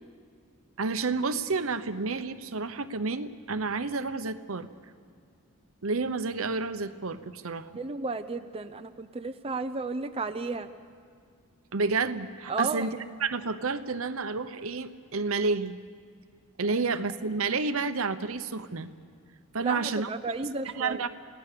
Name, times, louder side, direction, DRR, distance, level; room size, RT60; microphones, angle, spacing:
voice 1, 0.8-4.7 5.8-7.7 11.7-12.9 13.2-15.8 16.6-18.9 19.5-20.1 20.8-21.1, right 4 dB, 70° right, 11 dB, 0.9 m, -30 dB
voice 2, 7.7-10.7 12.5-12.9 19.6-21.0, right 3 dB, 25° right, 7 dB, 0.6 m, -33 dB
28.5 x 18.0 x 6.8 m, 2.3 s
head